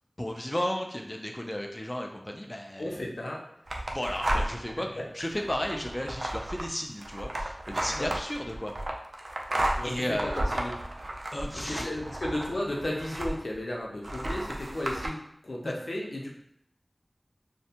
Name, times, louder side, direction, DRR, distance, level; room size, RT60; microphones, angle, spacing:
voice 1, 0.2-3.0 3.9-8.7 9.8-10.3 11.3-11.9 15.6-15.7, left 1 dB, 25° left, 2 dB, 0.3 m, -34 dB
voice 2, 2.8-3.4 4.8-4.9 7.7-8.1 9.8-9.9 10.2-10.7 11.6-15.2 15.4-16.3, left 1 dB, 85° left, -2 dB, 0.5 m, -34 dB
sound 1, 3.7-4.7 5.2-13.6 14.0-15.1, right 1 dB, 80° right, 0.3 m, -33 dB
2.5 x 2.2 x 2.7 m, 0.73 s
wide cardioid pair, 45°, 0 cm